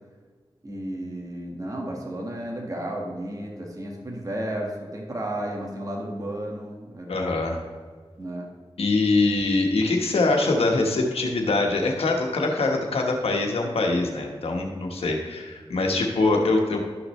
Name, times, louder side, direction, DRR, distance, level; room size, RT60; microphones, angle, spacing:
voice 1, 0.6-7.1 8.2-8.5, right 1 dB, 35° right, -1 dB, 1.6 m, -33 dB
voice 2, 7.1-7.6 8.8-16.8, left 3 dB, 90° left, 2 dB, 1.3 m, -23 dB
12.5 x 5.9 x 3.2 m, 1.5 s
cardioid pair, 55°, 10 cm